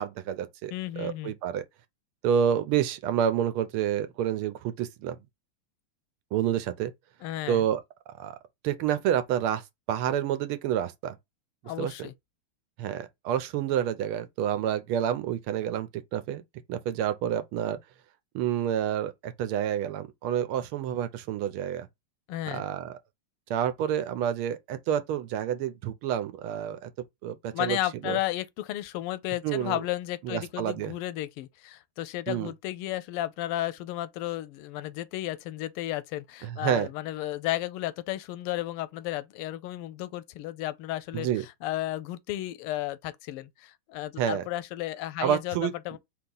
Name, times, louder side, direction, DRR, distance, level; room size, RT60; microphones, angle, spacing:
voice 1, 0.0-1.6 2.2-5.2 6.3-6.9 7.5-7.8 8.2-8.4 8.6-11.2 11.8-11.9 12.8-16.4 16.7-17.8 18.3-21.9 22.5-23.0 23.5-26.9 27.2-27.8 28.0-28.2 29.4-29.8 30.2-30.9 32.3-32.5 36.4-36.9 41.1-41.4 44.2-44.4 45.2-45.7, right 9 dB, 80° right, 1.5 m, -28 dB
voice 2, 0.7-1.3 7.2-7.6 11.6-12.1 22.3-22.6 27.5-46.0, left 15 dB, 90° left, 1.5 m, -33 dB
4.1 x 2.9 x 3.8 m
omnidirectional pair, 2.4 m